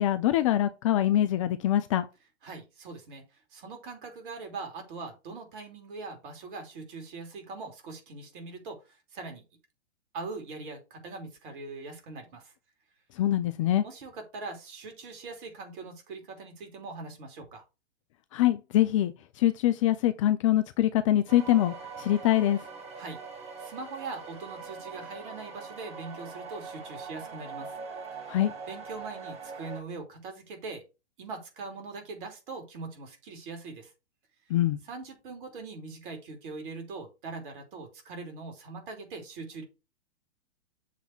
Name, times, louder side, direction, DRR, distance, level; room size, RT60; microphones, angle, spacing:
voice 1, 0.0-2.1 13.2-13.8 18.3-22.6 28.3-28.5 34.5-34.8, left 13 dB, 30° left, 0.4 m, -24 dB
voice 2, 2.4-9.4 10.1-12.5 13.3-13.5 13.8-17.6 23.0-23.2 23.6-27.7 28.7-30.8 31.2-33.9 34.8-39.6, right 3 dB, 50° right, 3.0 m, -41 dB
sound 1, 21.3-29.8, right 5 dB, 20° right, 1.6 m, -42 dB
7.4 x 3.5 x 6.0 m
figure-of-eight pair, 115°, 34 cm